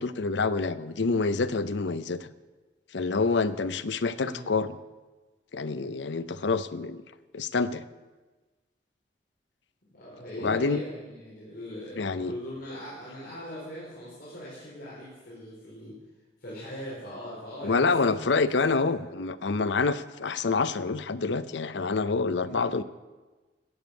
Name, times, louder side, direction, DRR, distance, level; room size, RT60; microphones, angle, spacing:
voice 1, 0.0-2.3 2.9-4.8 5.5-7.0 7.3-7.8 10.4-10.8 12.0-12.3 17.6-22.8, left 4 dB, 70° left, 14 dB, 0.6 m, -27 dB
voice 2, 4.1-4.4 9.9-15.9 16.4-18.8 22.4-22.6, equal, 55° left, -8 dB, 4.7 m, -40 dB
16.0 x 7.1 x 8.3 m, 1.2 s
head